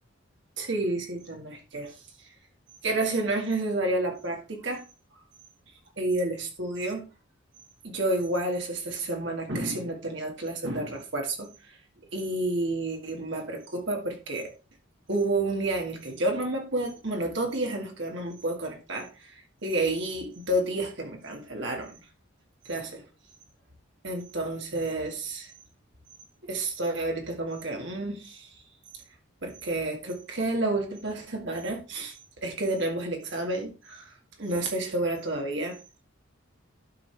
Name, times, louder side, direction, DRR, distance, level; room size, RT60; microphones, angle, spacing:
voice 1, 0.6-1.9 2.8-4.8 6.0-7.1 7.8-11.7 12.1-14.5 15.1-22.0 22.7-23.0 24.0-25.5 26.4-28.5 29.4-32.1 32.4-35.8, right 2 dB, 60° right, 2.0 m, -30 dB
11.5 x 5.1 x 3.4 m
head